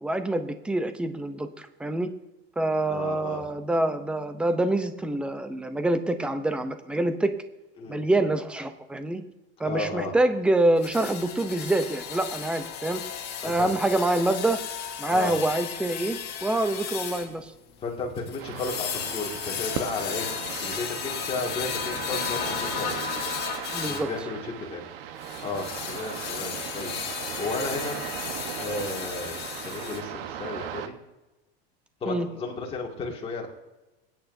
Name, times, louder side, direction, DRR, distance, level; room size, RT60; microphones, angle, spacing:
voice 1, 0.0-2.1 2.6-7.4 7.9-9.2 9.6-13.0 13.4-14.6 15.0-17.5 23.7-24.1 32.1-32.3, right 2 dB, 5° right, 9 dB, 0.6 m, -26 dB
voice 2, 2.9-3.5 7.8-8.0 9.6-10.1 13.4-13.7 15.1-15.4 17.8-20.3 20.6-23.0 23.8-24.8 25.4-27.0 27.4-28.0 28.6-29.4 29.6-31.0 32.0-33.5, left 3 dB, 20° left, -1 dB, 2.1 m, -33 dB
sound 1, 10.8-24.1 25.2-30.0, left 9 dB, 35° left, 1.8 m, -35 dB
sound 2, 18.4-30.9, right 9 dB, 70° right, 1.1 m, -37 dB
25.5 x 9.2 x 2.7 m, 1.0 s
supercardioid pair, 155°, 30 cm